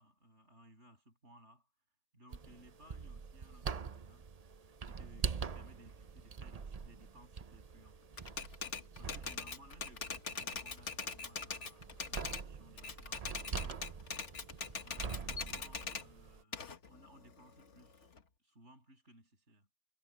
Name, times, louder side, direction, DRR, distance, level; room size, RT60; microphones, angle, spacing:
voice 1, 0.0-1.7 2.1-4.3 4.9-8.1 8.6-13.9 14.8-19.7, equal, 85° right, 8.1 m, -61 dB
sound 1, 2.3-16.4, right 5 dB, 40° right, 0.7 m, -45 dB
Typewriter, 8.2-12.5 12.8-16.1 16.5-18.2, left 5 dB, 85° left, 1.9 m, -42 dB
omnidirectional pair, 1.2 m